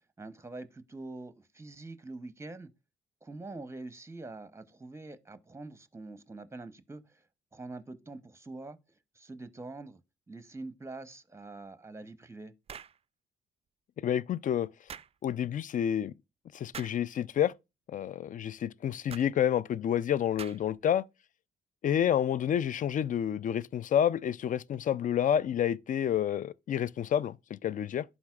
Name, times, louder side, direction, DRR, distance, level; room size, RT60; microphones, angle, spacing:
voice 1, 0.2-2.7 3.2-7.2 7.5-8.8 9.2-10.0 10.3-12.5, right 2 dB, 15° right, 0.8 m, -44 dB
sound 1, 12.7-13.0 14.9-15.1 16.7-17.0 19.1-19.3 20.4-20.8, right 7 dB, 35° right, 0.3 m, -44 dB
voice 2, 14.0-14.7 15.2-16.1 16.5-17.5 17.9-21.0 21.8-28.0, left 9 dB, 45° left, 0.4 m, -29 dB
11.5 x 4.3 x 2.4 m
supercardioid pair, 55°, 19 cm